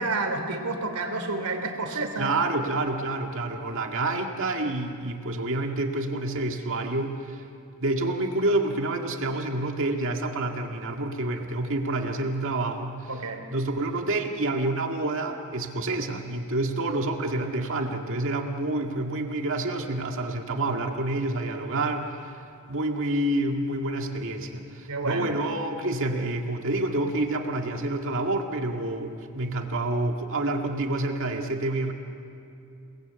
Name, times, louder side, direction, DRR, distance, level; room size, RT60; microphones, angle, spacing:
voice 1, 0.0-2.3 13.1-13.4 24.9-25.3, right 3 dB, 85° right, 5 dB, 3.0 m, -29 dB
voice 2, 2.2-7.4 7.8-13.0 13.5-22.3 22.7-31.9, right 2 dB, 60° right, 3 dB, 2.0 m, -28 dB
29.5 x 20.0 x 8.2 m, 2.6 s
head